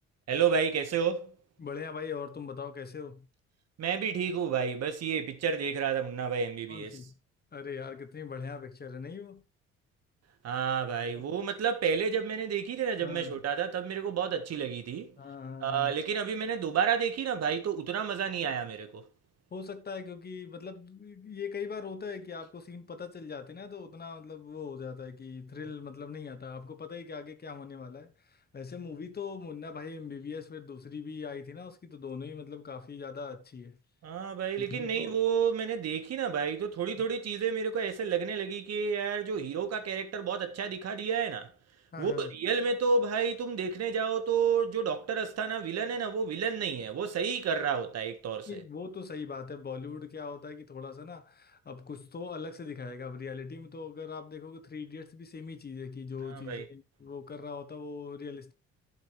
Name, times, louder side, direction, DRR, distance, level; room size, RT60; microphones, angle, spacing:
voice 1, 0.3-1.3 3.8-7.0 10.4-15.1 15.6-19.0 34.0-41.5 42.0-48.6 56.3-56.6, right 6 dB, 60° right, 1.8 m, -30 dB
voice 2, 1.6-3.3 6.7-7.2 7.5-9.4 11.0-11.2 13.0-13.4 15.2-15.9 19.5-33.8 34.6-35.1 37.0-37.1 41.9-42.3 48.5-58.5, left 5 dB, 35° left, 1.2 m, -41 dB
11.5 x 7.7 x 3.4 m
cardioid pair, 95°, 29 cm